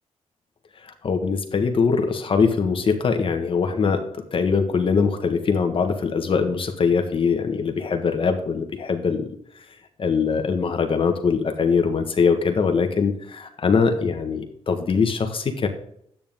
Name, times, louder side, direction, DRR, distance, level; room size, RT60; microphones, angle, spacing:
voice 1, 0.8-9.4 10.0-15.7, left 5 dB, 50° left, 5 dB, 1.5 m, -22 dB
10.5 x 9.0 x 3.7 m, 0.69 s
cardioid pair, 85°, 12 cm